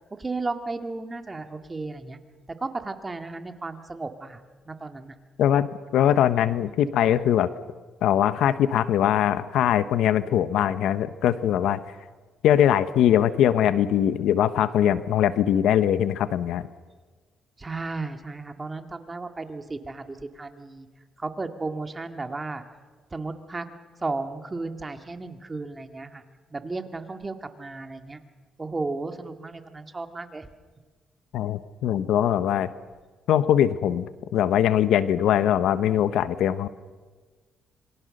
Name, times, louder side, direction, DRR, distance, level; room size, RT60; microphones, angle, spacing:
voice 1, 0.2-2.2 2.5-4.4 4.7-5.1 17.6-20.9 21.2-22.6 23.1-23.7 24.0-26.2 26.5-28.2 28.6-30.5, right 3 dB, 25° right, 7 dB, 2.2 m, -34 dB
voice 2, 5.4-7.5 8.0-11.8 12.4-16.7 31.3-32.7 33.3-36.7, left 10 dB, 80° left, 13 dB, 1.0 m, -22 dB
27.0 x 23.5 x 6.6 m, 1.4 s
cardioid pair, 90°, 0 cm